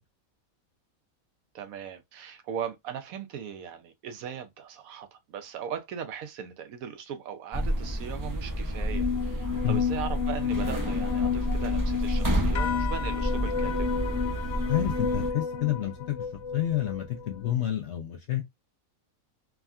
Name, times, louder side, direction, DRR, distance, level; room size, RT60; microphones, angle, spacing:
voice 1, 1.5-13.9, right 8 dB, 80° right, 1.1 m, -38 dB
sound 1, 7.5-15.3, equal, 25° right, 0.4 m, -29 dB
sound 2, 8.9-17.5, left 7 dB, 85° left, 1.1 m, -31 dB
voice 2, 14.6-16.2 16.5-18.4, left 12 dB, 65° left, 0.8 m, -29 dB
3.5 x 2.1 x 2.3 m
omnidirectional pair, 1.5 m